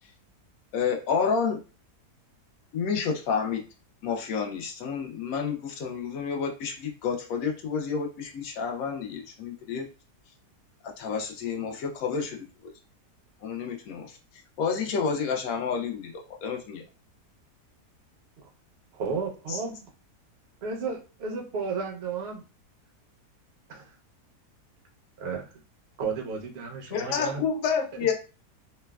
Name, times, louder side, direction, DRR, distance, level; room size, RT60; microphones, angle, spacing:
voice 1, 0.7-1.6 2.7-3.6 4.0-9.9 11.0-12.7 13.4-14.2 14.6-16.8, left 6 dB, 70° left, 1 dB, 0.9 m, -30 dB
voice 2, 18.9-19.9 20.6-22.4 23.7-23.9 25.2-25.5 26.0-27.4, right 5 dB, 60° right, 1 dB, 0.6 m, -33 dB
voice 3, 26.9-28.1, left 7 dB, 90° left, 5 dB, 1.2 m, -26 dB
3.1 x 2.1 x 2.2 m, 0.33 s
omnidirectional pair, 1.8 m